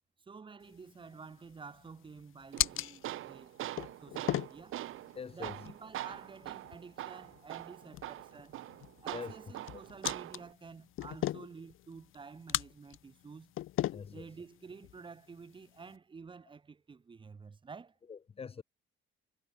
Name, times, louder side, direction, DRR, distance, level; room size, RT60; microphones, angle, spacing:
voice 1, 0.3-3.5 4.0-4.8 5.3-8.6 9.0-13.5 14.1-18.0, right 5 dB, 25° right, 4.8 m, -50 dB
sound 1, 0.6-16.0, left 14 dB, 75° left, 5.1 m, -41 dB
Tools, 2.5-10.5, right 14 dB, 75° right, 4.3 m, -43 dB
voice 2, 5.1-5.7 9.1-9.3 9.7-9.8 13.9-14.3 18.1-18.6, left 6 dB, 25° left, 1.9 m, -43 dB
cardioid pair, 170°, 21 cm